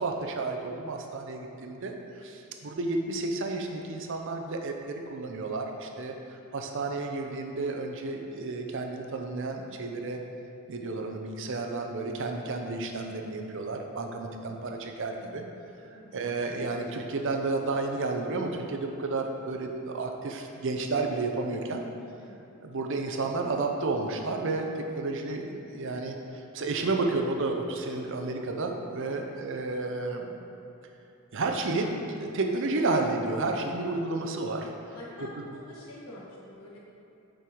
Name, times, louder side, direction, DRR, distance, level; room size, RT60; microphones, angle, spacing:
voice 1, 0.0-6.1 6.5-10.2 10.7-15.4 16.1-21.8 22.6-26.2 26.5-30.3 31.3-34.7, right 3 dB, 60° right, 3 dB, 0.7 m, -31 dB
voice 2, 22.2-22.5 29.1-29.3 34.9-36.8, left 1 dB, 85° left, -5 dB, 1.4 m, -47 dB
6.4 x 4.7 x 5.0 m, 2.8 s
head